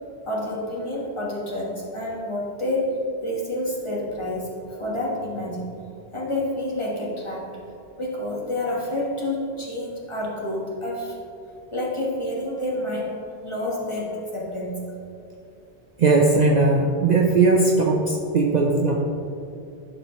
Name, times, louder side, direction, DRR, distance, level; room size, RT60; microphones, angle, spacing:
voice 1, 0.3-2.9 3.2-4.5 4.8-5.7 6.1-7.5 8.0-11.2 11.7-13.2 13.4-14.9, left 1 dB, 30° left, -4 dB, 1.3 m, -28 dB
voice 2, 16.0-18.9, right 3 dB, 50° right, -1 dB, 0.6 m, -18 dB
11.5 x 5.5 x 3.0 m, 2.5 s
omnidirectional pair, 1.1 m